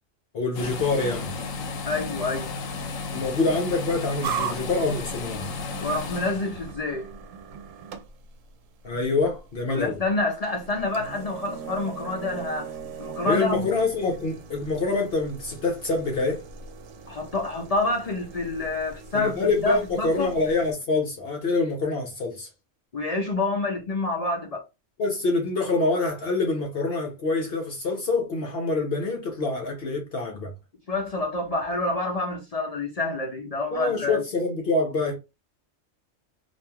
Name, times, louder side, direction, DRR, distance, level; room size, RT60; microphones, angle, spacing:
voice 1, 0.3-1.4 3.1-5.4 8.8-10.0 13.2-16.4 19.1-22.5 25.0-30.5 33.7-35.2, left 3 dB, 55° left, 0.8 m, -26 dB
sound 1, 0.5-6.7, left 4 dB, 90° left, 1.0 m, -33 dB
voice 2, 1.9-2.6 5.8-7.1 9.7-12.7 13.0-13.6 17.1-20.3 22.9-24.6 30.9-34.2, left 2 dB, 70° left, 0.3 m, -28 dB
sound 2, 4.2-20.7, right 6 dB, 80° right, 0.9 m, -39 dB
2.9 x 2.5 x 2.2 m
omnidirectional pair, 1.3 m